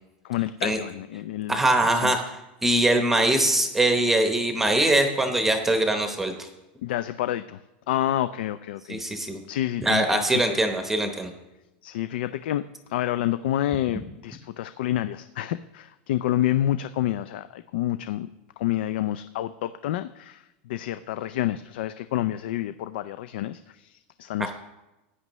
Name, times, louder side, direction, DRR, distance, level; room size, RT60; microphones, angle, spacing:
voice 1, 0.2-1.6 2.0-2.1 6.8-7.6 7.9-9.0 9.5-10.6 11.8-12.6 12.9-18.3 18.6-24.5, left 13 dB, 70° left, 12 dB, 0.4 m, -28 dB
voice 2, 1.5-2.2 2.6-6.5 8.9-9.4 9.8-11.3 24.4-24.5, right 1 dB, 5° right, 5 dB, 0.8 m, -22 dB
16.0 x 9.7 x 3.1 m, 1.0 s
supercardioid pair, 165°, 6 cm